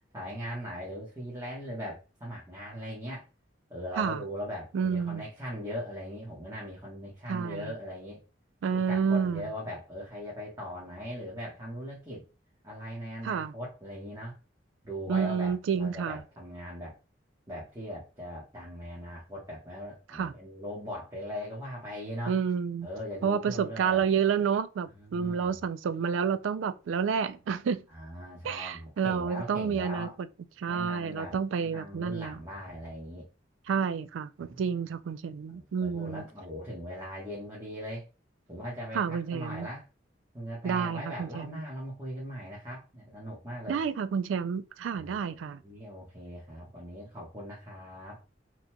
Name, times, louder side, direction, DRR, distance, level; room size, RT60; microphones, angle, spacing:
voice 1, 0.1-3.2 3.7-8.2 8.7-12.2 12.6-14.3 14.8-17.0 17.5-22.4 22.8-24.0 24.9-25.6 27.9-30.1 30.7-31.4 31.6-33.2 34.5-34.6 35.5-38.0 38.5-39.8 40.3-43.8 44.9-48.2, equal, 20° right, 1.2 m, -40 dB
voice 2, 4.7-5.2 7.3-7.7 8.6-9.5 13.2-13.5 15.1-16.2 20.1-20.3 22.3-22.9 23.2-27.8 28.4-30.1 30.6-32.4 33.7-36.2 38.9-39.7 40.6-41.6 43.7-45.6, right 6 dB, 80° right, 0.3 m, -29 dB
3.7 x 2.9 x 2.2 m
head